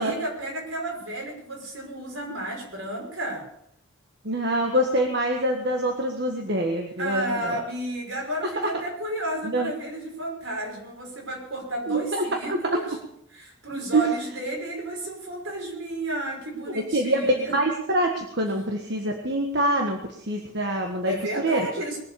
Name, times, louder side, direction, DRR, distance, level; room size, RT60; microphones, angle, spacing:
voice 1, 0.0-3.5 7.0-13.0 13.3-17.5 21.0-22.0, right 1 dB, 75° right, 0 dB, 5.6 m, -32 dB
voice 2, 4.2-7.6 9.4-9.7 11.9-12.8 13.7-14.0 16.9-21.2 21.4-21.7, right 1 dB, 55° right, 2 dB, 1.6 m, -25 dB
21.0 x 8.0 x 7.0 m, 0.74 s
head